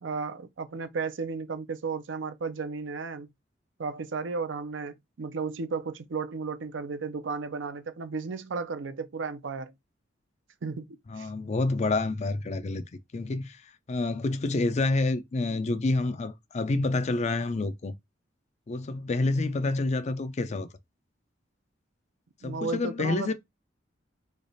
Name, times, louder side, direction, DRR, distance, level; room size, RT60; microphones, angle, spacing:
voice 1, 0.0-3.3 3.8-9.7 10.6-10.9 11.2-11.3 22.4-23.3, right 4 dB, 75° right, 0.5 m, -34 dB
voice 2, 11.1-12.8 13.1-18.0 18.7-20.7 22.4-23.3, left 2 dB, 35° left, 0.4 m, -28 dB
3.2 x 2.3 x 3.9 m
head